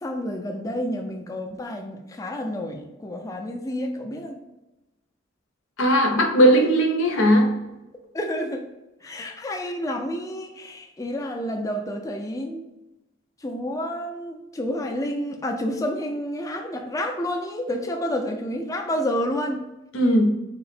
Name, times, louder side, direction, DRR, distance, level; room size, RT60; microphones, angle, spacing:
voice 1, 0.0-4.4 8.1-8.6 9.0-12.7 13.4-19.6, equal, 15° left, 3 dB, 0.3 m, -29 dB
voice 2, 5.8-7.6 19.9-20.3, equal, 85° left, 3 dB, 0.6 m, -18 dB
3.6 x 2.0 x 4.1 m, 0.99 s
head